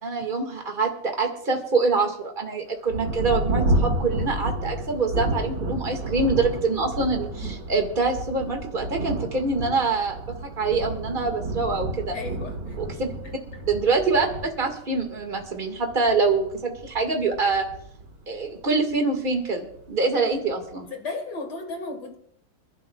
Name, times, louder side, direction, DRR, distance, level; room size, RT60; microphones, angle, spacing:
voice 1, 0.0-12.2 12.8-13.1 13.7-17.6 18.3-20.9, right 3 dB, 25° right, 4 dB, 1.8 m, -25 dB
Thunder, 2.9-18.9 19.7-19.8 20.3-20.8, right 1 dB, 55° right, 2.5 m, -31 dB
voice 2, 12.1-12.8 13.2-13.6 20.7-22.2, left 3 dB, 50° left, 4 dB, 2.5 m, -35 dB
29.0 x 11.5 x 2.3 m, 0.70 s
omnidirectional pair, 2.3 m